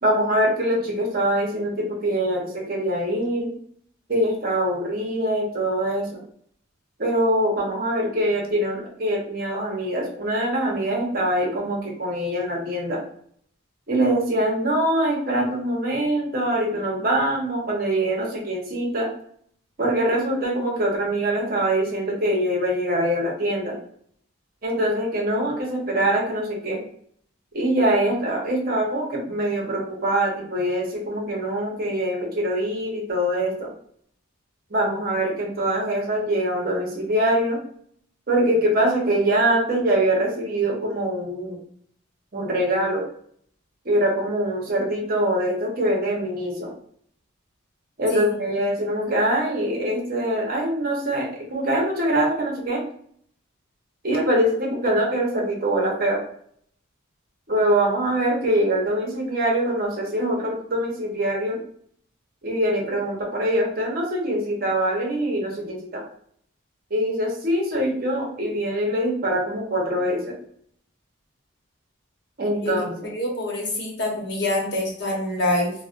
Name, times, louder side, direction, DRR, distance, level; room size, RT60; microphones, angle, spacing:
voice 1, 0.0-3.5 4.1-6.2 7.0-13.0 13.9-19.1 19.8-23.7 24.6-26.8 27.5-33.7 34.7-37.6 38.3-41.6 42.3-43.0 43.8-46.7 48.0-52.8 54.0-56.2 57.5-61.6 62.4-66.0 66.9-70.3 72.4-73.1, right 1 dB, 45° right, -2 dB, 0.8 m, -23 dB
voice 2, 73.1-75.7, left 1 dB, 55° left, -1 dB, 0.9 m, -26 dB
4.1 x 2.1 x 2.4 m, 0.62 s
head